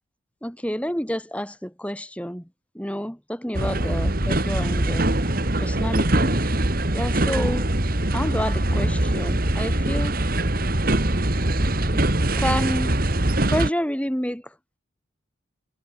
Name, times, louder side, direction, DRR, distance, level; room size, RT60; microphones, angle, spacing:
voice 1, 0.4-2.5 2.7-6.4 6.9-7.7 8.1-10.1 11.9-12.0 12.4-13.0 13.5-14.5, equal, 5° left, 2.8 m, -29 dB
sound 1, 3.5-13.7, right 1 dB, 45° right, 2.2 m, -22 dB
head